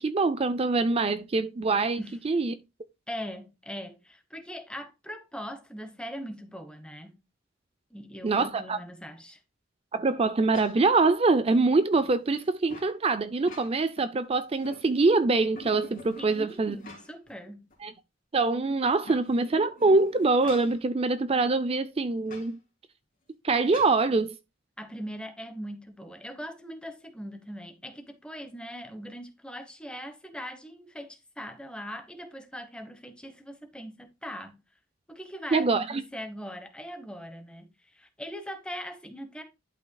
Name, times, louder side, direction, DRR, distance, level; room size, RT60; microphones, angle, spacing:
voice 1, 0.0-2.5 8.2-8.8 9.9-16.8 17.8-17.9 18.3-22.6 23.4-24.4 35.5-36.0, right 3 dB, 30° right, 0.4 m, -24 dB
voice 2, 3.1-7.2 7.9-9.4 16.2-17.7 24.8-34.6 35.1-39.4, equal, 5° left, 1.1 m, -41 dB
sound 1, 10.5-11.0 11.5-13.0 13.3-14.1 14.4-15.2 15.6-17.3 17.7-17.8 18.8-20.8 22.3-22.5 23.7-24.0, left 1 dB, 45° left, 2.7 m, -47 dB
11.5 x 5.6 x 2.3 m
head